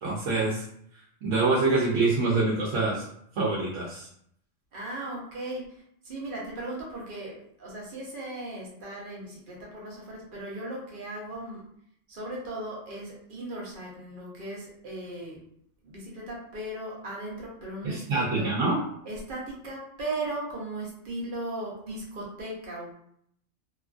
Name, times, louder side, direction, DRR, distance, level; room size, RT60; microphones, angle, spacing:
voice 1, 0.0-0.6 1.2-3.0 3.4-4.1 17.8-18.8, right 3 dB, 85° right, -5 dB, 1.0 m, -25 dB
voice 2, 4.7-11.6 12.1-15.4 15.8-18.5 19.0-22.9, right 1 dB, 50° right, -3 dB, 0.9 m, -37 dB
3.0 x 2.4 x 2.4 m, 0.69 s
omnidirectional pair, 1.3 m